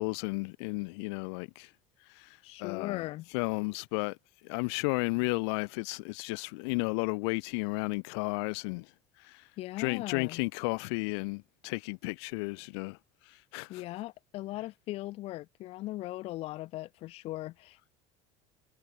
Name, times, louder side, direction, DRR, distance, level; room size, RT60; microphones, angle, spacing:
voice 1, 0.0-1.7 2.2-2.3 2.6-3.1 3.3-4.2 4.4-8.9 9.2-9.4 9.8-13.0 13.5-13.8, left 30 dB, 85° left, 0.7 m, -33 dB
voice 2, 2.4-3.3 9.6-10.4 13.7-17.9, left 17 dB, 50° left, 0.4 m, -39 dB
cardioid pair, 140°, 14 cm